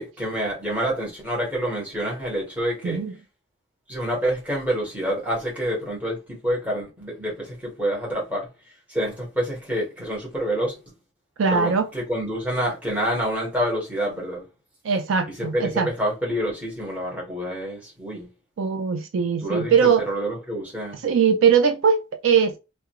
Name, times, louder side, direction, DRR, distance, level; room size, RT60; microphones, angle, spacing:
voice 1, 0.0-3.0 3.9-8.5 8.9-10.7 11.5-14.5 15.3-18.3 19.4-21.0, equal, 5° right, 1.0 m, -27 dB
voice 2, 11.4-11.9 14.8-15.9 18.6-20.0 21.0-22.6, right 6 dB, 75° right, 0.4 m, -20 dB
2.4 x 2.2 x 2.8 m
head